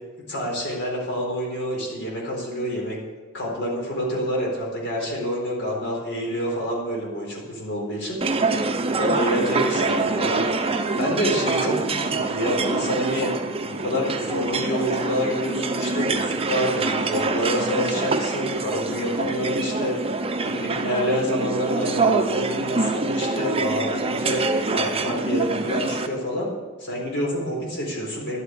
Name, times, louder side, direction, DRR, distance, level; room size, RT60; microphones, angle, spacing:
voice 1, 0.3-3.0 3.3-8.2 9.0-10.4 10.9-13.3 13.6-19.9 20.4-24.4 24.7-26.5 26.8-28.4, equal, 55° left, -1 dB, 4.2 m, -27 dB
sound 1, 8.2-26.1, right 3 dB, 25° right, 0.8 m, -25 dB
12.0 x 8.0 x 8.0 m, 1.4 s
head